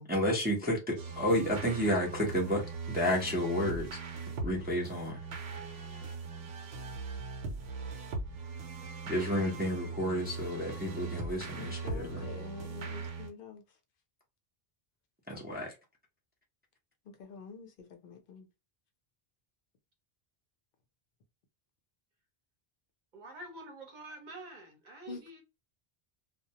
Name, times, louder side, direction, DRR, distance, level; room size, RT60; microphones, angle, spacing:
voice 1, 0.1-3.9 4.4-5.2 9.1-12.3 15.3-15.7, equal, 10° right, 0.5 m, -31 dB
sound 1, 1.0-13.3, right 4 dB, 80° right, 0.8 m, -40 dB
voice 2, 11.5-13.6 17.0-18.5 25.1-25.4, left 5 dB, 65° left, 0.7 m, -47 dB
voice 3, 23.1-25.4, right 1 dB, 50° right, 0.9 m, -47 dB
2.2 x 2.1 x 2.7 m
omnidirectional pair, 1.0 m